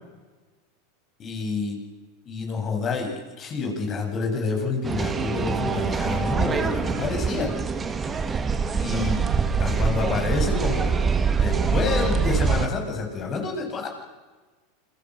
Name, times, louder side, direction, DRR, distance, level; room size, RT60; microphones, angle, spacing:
voice 1, 1.2-1.8 2.3-7.5 8.8-9.2 9.6-11.0 11.4-13.9, left 4 dB, 35° left, 3 dB, 7.9 m, -28 dB
sound 1, 4.8-12.7, right 5 dB, 20° right, 2.5 m, -24 dB
29.0 x 23.0 x 6.6 m, 1.3 s
hypercardioid pair, 105°, 0 cm